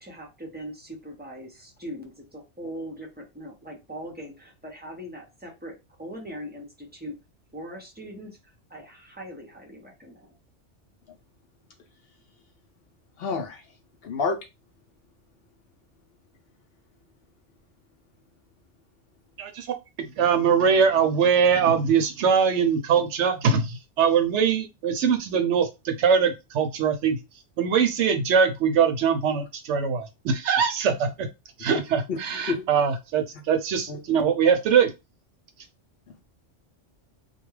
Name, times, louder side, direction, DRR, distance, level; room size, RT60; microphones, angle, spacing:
voice 1, 0.0-7.2 7.5-8.4 8.7-10.3, equal, 10° right, 0.5 m, -40 dB
voice 2, 13.2-13.7 14.0-14.4 32.1-32.2 32.5-32.6 33.9-34.3, left 4 dB, 60° left, 0.7 m, -29 dB
voice 3, 20.2-27.2 27.6-31.3 31.6-34.9, right 6 dB, 75° right, 0.8 m, -22 dB
2.3 x 2.2 x 3.1 m
omnidirectional pair, 1.3 m